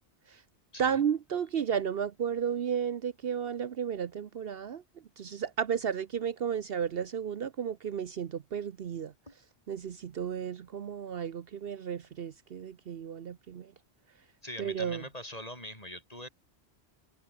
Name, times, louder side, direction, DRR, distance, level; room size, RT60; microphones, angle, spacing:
voice 1, 0.8-4.8 5.2-9.1 9.7-13.7 14.6-15.0, right 8 dB, 60° right, 1.0 m, -33 dB
voice 2, 14.4-16.3, left 1 dB, 35° left, 7.8 m, -43 dB
omnidirectional pair, 1.1 m